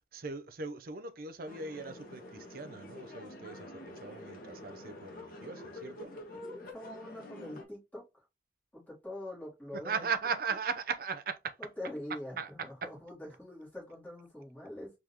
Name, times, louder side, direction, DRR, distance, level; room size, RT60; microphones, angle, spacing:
voice 1, 0.1-6.1 9.7-11.6 12.4-12.9, right 5 dB, 55° right, 0.6 m, -38 dB
sound 1, 1.4-7.6, left 1 dB, 50° left, 1.3 m, -47 dB
voice 2, 6.3-8.2 8.7-10.1 11.6-14.9, left 1 dB, 10° left, 2.8 m, -44 dB
4.7 x 3.7 x 2.9 m
head